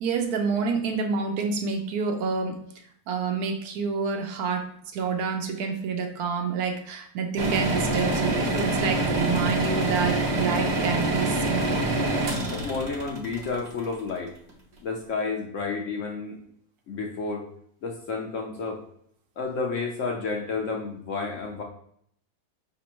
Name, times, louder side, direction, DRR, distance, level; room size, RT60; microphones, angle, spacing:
voice 1, 0.0-2.6 3.1-11.8, right 5 dB, 70° right, 5 dB, 1.0 m, -28 dB
sound 1, 7.4-14.3, right 2 dB, 50° right, 0.9 m, -26 dB
voice 2, 12.5-14.3 14.8-16.4 16.9-17.5 17.8-18.8 19.4-21.6, left 4 dB, 60° left, 1 dB, 0.9 m, -31 dB
5.1 x 3.4 x 2.9 m, 0.67 s
omnidirectional pair, 1.7 m